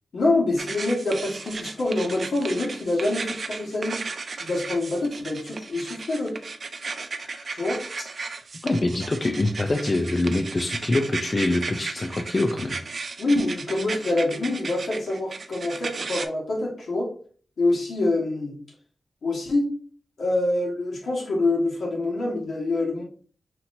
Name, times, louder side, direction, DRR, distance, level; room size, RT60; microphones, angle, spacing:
voice 1, 0.1-4.0 4.4-6.4 7.5-7.8 13.2-17.1 17.6-18.6 19.2-19.7 20.2-23.0, left 2 dB, 80° left, -2 dB, 1.5 m, -25 dB
sound 1, 0.6-16.2, right 4 dB, 50° right, 0.4 m, -35 dB
voice 2, 8.6-12.8, left 2 dB, 30° left, 4 dB, 0.4 m, -25 dB
5.8 x 2.9 x 2.6 m, 0.43 s
wide cardioid pair, 160°, 0 cm